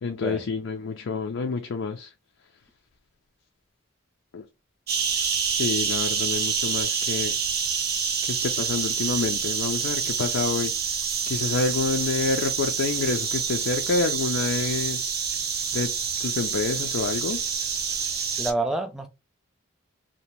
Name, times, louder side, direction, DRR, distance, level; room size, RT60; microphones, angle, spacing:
voice 1, 0.0-2.1 4.3-4.5 5.4-7.4 8.2-10.8 11.3-15.0 15.7-15.9 16.2-17.4, left 4 dB, 80° left, 0.4 m, -28 dB
sound 1, 4.9-18.5, right 6 dB, 50° right, 0.7 m, -27 dB
voice 2, 18.4-19.1, right 2 dB, ahead, 0.3 m, -27 dB
2.8 x 2.1 x 3.0 m
head